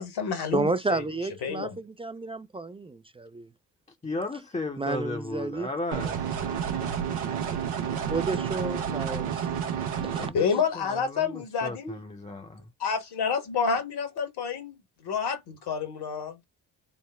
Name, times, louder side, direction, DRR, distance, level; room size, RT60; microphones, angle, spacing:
voice 1, 0.0-1.0 1.4-1.8 10.3-12.0 12.8-16.6, left 6 dB, 60° left, 1.3 m, -29 dB
voice 2, 0.5-3.5 4.8-5.7 6.0-6.2 8.1-9.5 10.0-10.3, right 3 dB, 15° right, 0.3 m, -31 dB
voice 3, 4.0-6.4 10.2-12.6, left 2 dB, 15° left, 0.7 m, -35 dB
sound 1, 5.9-10.3, right 8 dB, 80° right, 0.9 m, -30 dB
3.6 x 2.0 x 3.5 m
hypercardioid pair, 40°, 45 cm